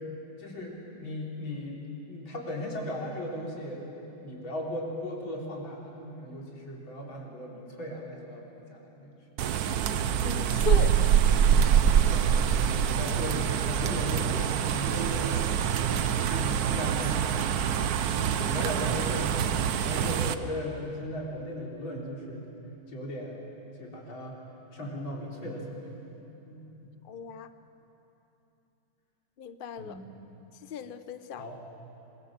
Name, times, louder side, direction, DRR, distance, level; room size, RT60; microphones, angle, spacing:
voice 1, 0.4-3.8 4.2-9.2 11.9-12.3 12.6-15.4 15.8-17.4 18.2-22.5 22.9-23.4 23.8-24.4 24.7-26.0 26.4-26.9 29.8-30.1 31.4-31.6, left 1 dB, 85° left, -2 dB, 4.3 m, -37 dB
sound 1, 9.4-20.3, right 8 dB, 60° right, 1.1 m, -25 dB
voice 2, 10.2-11.0 27.1-27.5 29.4-30.0 30.7-31.5, left 7 dB, 50° left, 11 dB, 0.6 m, -36 dB
26.0 x 21.5 x 7.5 m, 3.0 s
omnidirectional pair, 2.1 m